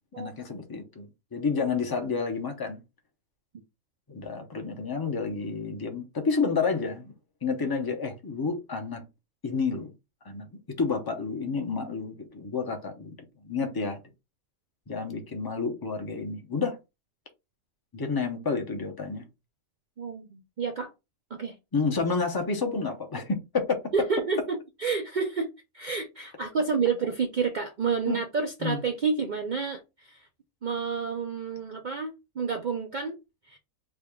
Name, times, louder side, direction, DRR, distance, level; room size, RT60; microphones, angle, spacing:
voice 1, 0.2-2.8 4.1-7.1 7.4-9.0 9.4-9.9 10.2-13.2 13.4-14.0 14.9-16.8 17.9-19.2 21.7-23.8 28.1-28.2 28.6-28.8, left 4 dB, 30° left, 0.4 m, -30 dB
voice 2, 20.0-20.9 21.3-21.6 23.9-30.3 30.6-33.2 33.5-33.6, right 5 dB, 70° right, 0.4 m, -29 dB
3.5 x 2.3 x 3.5 m
omnidirectional pair, 1.4 m